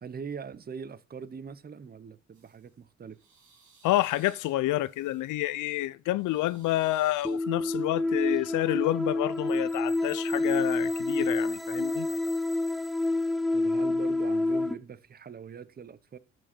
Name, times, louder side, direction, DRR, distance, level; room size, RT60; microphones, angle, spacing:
voice 1, 0.0-3.2 13.5-16.2, right 6 dB, 30° right, 0.8 m, -42 dB
sound 1, 2.3-2.7 3.1-5.6 6.1-7.4, right 5 dB, 75° right, 3.4 m, -59 dB
voice 2, 3.8-12.1, left 16 dB, 85° left, 0.5 m, -29 dB
sound 2, 7.2-14.7, left 2 dB, ahead, 0.5 m, -28 dB
12.0 x 7.6 x 4.4 m
cardioid pair, 90°, 30 cm